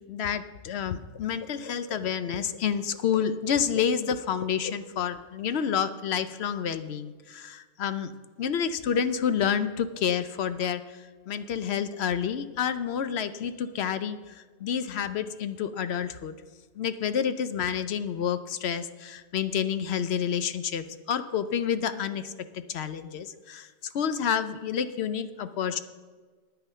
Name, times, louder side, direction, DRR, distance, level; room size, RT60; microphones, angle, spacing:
voice 1, 0.1-8.1 8.4-10.8 11.3-14.2 14.6-16.3 16.8-23.7 23.9-25.8, left 8 dB, 60° left, 11 dB, 0.8 m, -29 dB
10.0 x 9.3 x 5.5 m, 1.4 s
omnidirectional pair, 1.4 m